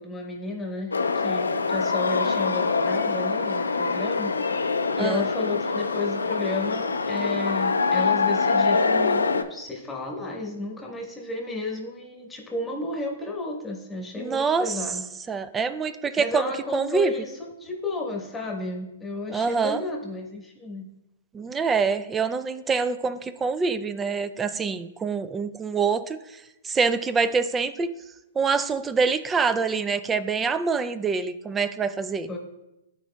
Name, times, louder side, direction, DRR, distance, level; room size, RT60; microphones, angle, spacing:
voice 1, 0.0-15.0 16.2-20.9 32.3-32.4, left 2 dB, 10° left, 0 dB, 1.4 m, -33 dB
sound 1, 0.9-9.4, left 4 dB, 90° left, 0.4 m, -24 dB
voice 2, 5.0-5.3 14.2-14.8 15.3-17.1 19.3-19.8 21.3-26.2 26.6-27.9 28.4-32.3, right 5 dB, 15° right, 12 dB, 0.4 m, -25 dB
12.0 x 4.5 x 2.3 m, 0.92 s
hypercardioid pair, 120°, 0 cm